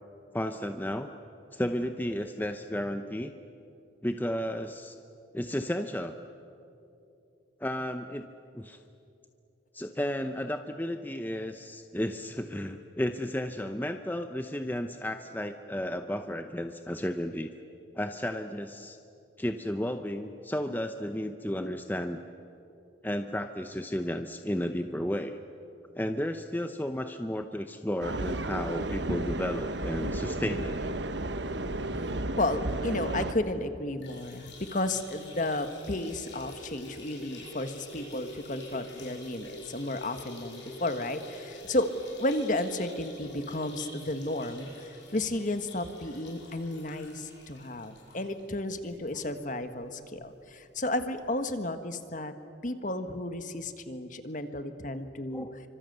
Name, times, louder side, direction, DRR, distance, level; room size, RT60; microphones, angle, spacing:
voice 1, 0.3-1.1 1.5-3.3 4.0-5.0 5.3-6.1 7.6-8.3 8.5-8.8 9.7-17.5 17.9-19.0 19.4-22.2 23.0-25.4 25.9-30.8 31.9-32.1 55.3-55.5, left 1 dB, 10° left, 7 dB, 0.7 m, -33 dB
sound 1, 28.0-33.3, right 2 dB, 75° right, 1.3 m, -33 dB
voice 2, 32.4-41.9 42.2-52.3 52.6-55.5, left 1 dB, 45° left, 9 dB, 1.5 m, -33 dB
sound 2, 33.9-49.3 49.7-49.8 50.1-50.2 51.2-51.3, left 2 dB, 75° left, 7.3 m, -47 dB
29.0 x 25.0 x 8.0 m, 2.7 s
head